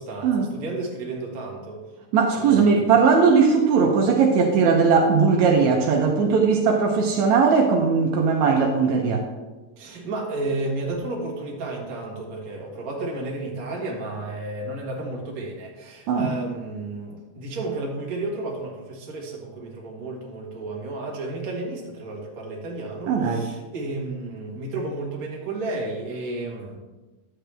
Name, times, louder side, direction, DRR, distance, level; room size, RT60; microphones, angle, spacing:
voice 1, 0.0-1.8 2.3-2.8 9.8-26.8, right 2 dB, 40° right, -1 dB, 1.5 m, -32 dB
voice 2, 2.1-9.3 16.1-16.3 23.1-23.5, right 5 dB, 75° right, 1 dB, 1.9 m, -19 dB
11.0 x 7.8 x 3.4 m, 1.2 s
omnidirectional pair, 3.6 m